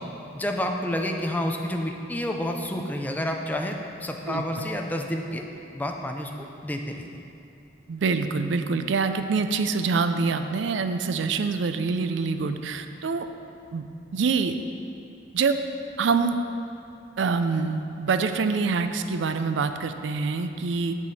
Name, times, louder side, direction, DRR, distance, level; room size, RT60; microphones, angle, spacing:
voice 1, 0.3-5.4 5.7-6.3 6.6-7.1, left 1 dB, 10° left, 2 dB, 0.5 m, -29 dB
voice 2, 4.3-4.7 7.9-13.3 13.7-13.9 14.1-14.5 15.3-15.6 16.0-16.4 17.2-20.9, right 4 dB, 70° right, 9 dB, 0.4 m, -25 dB
7.2 x 6.7 x 4.1 m, 2.6 s
head